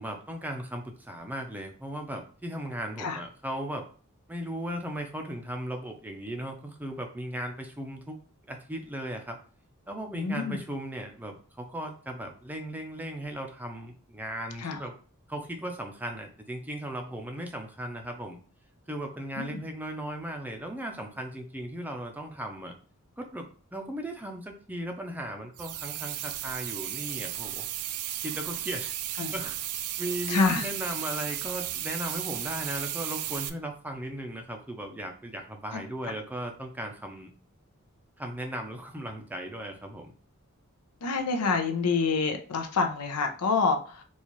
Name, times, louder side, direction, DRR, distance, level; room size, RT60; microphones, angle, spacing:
voice 1, 0.0-3.8 4.3-8.2 8.5-9.4 9.9-15.0 15.3-18.4 18.9-22.7 23.2-27.7 28.2-28.9 29.3-29.6 30.0-37.3 38.2-40.1, right 1 dB, 10° right, 3 dB, 0.5 m, -37 dB
voice 2, 10.1-10.6 14.6-14.8 19.4-19.6 29.2-29.3 30.3-30.7 35.7-35.8 41.0-44.0, left 4 dB, 85° left, 5 dB, 0.6 m, -27 dB
sound 1, 25.6-33.5, right 12 dB, 75° right, 0.4 m, -34 dB
4.2 x 2.4 x 3.0 m, 0.41 s
head